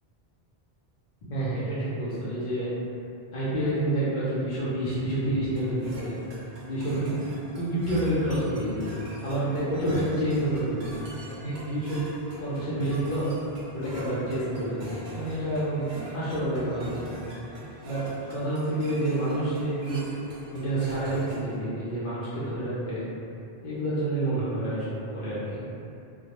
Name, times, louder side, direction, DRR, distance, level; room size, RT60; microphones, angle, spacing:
voice 1, 1.3-2.7 3.3-6.2 6.6-8.9 9.2-11.0 11.4-12.0 12.4-13.3 13.7-17.2 17.8-18.0 18.3-20.1 20.5-23.0 23.6-25.6, right 1 dB, 55° left, -10 dB, 0.6 m, -28 dB
sound 1, 5.6-21.6, right 1 dB, 90° right, 0.8 m, -43 dB
2.2 x 2.0 x 2.8 m, 2.7 s
omnidirectional pair, 1.0 m